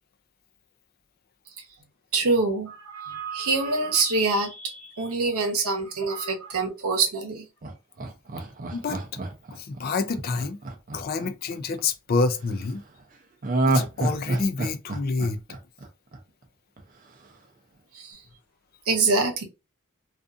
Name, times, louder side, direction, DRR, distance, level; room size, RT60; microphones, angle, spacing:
voice 1, 2.1-7.5 17.9-18.2 18.9-19.4, right 3 dB, 80° right, 0.8 m, -25 dB
Laughter, 7.6-11.8 13.4-16.4 16.8-16.9, right 2 dB, 40° right, 0.5 m, -28 dB
voice 2, 9.5-10.6 10.9-12.8 13.7-15.4, left 4 dB, 45° left, 0.4 m, -28 dB
2.6 x 2.4 x 2.4 m
head